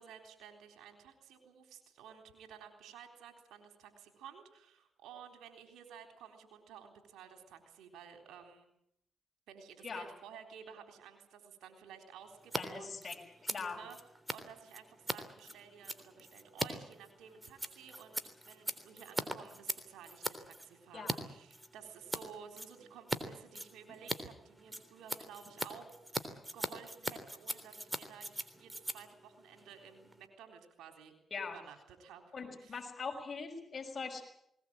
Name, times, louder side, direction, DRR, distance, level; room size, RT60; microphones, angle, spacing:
voice 1, 0.0-8.7 9.5-13.0 13.5-14.0 14.3-31.2 31.4-32.8, right 7 dB, 85° right, 5 dB, 3.8 m, -54 dB
Scissors, 12.4-12.6 12.9-21.2 21.5-22.2 22.5-23.2 23.5-30.3, right 1 dB, 15° right, 3.5 m, -40 dB
voice 2, 12.6-13.1 13.4-13.8 20.9-21.1 31.3-31.6 32.3-34.2, left 5 dB, 45° left, 1 dB, 6.1 m, -41 dB
20.0 x 19.5 x 8.8 m, 0.74 s
supercardioid pair, 50°, 0 cm